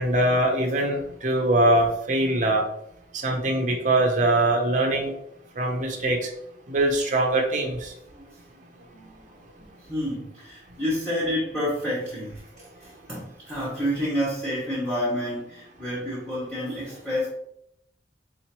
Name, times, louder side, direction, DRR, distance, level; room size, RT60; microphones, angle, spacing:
voice 1, 0.0-2.7 3.1-5.1 5.6-6.3 6.7-7.9, right 1 dB, 45° right, 1 dB, 0.6 m, -22 dB
voice 2, 8.1-17.3, equal, 5° left, -10 dB, 1.2 m, -30 dB
3.8 x 3.0 x 2.9 m, 0.74 s
head